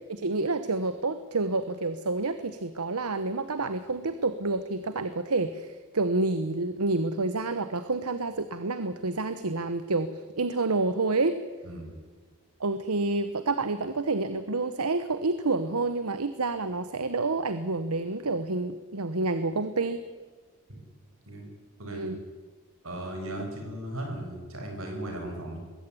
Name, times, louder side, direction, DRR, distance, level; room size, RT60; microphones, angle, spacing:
voice 1, 0.1-11.4 12.6-20.1 21.9-22.2, right 3 dB, 90° right, 12 dB, 1.1 m, -28 dB
voice 2, 21.8-22.1 22.8-25.6, right 1 dB, 75° right, 3 dB, 6.7 m, -37 dB
21.0 x 16.0 x 9.8 m, 1.5 s
head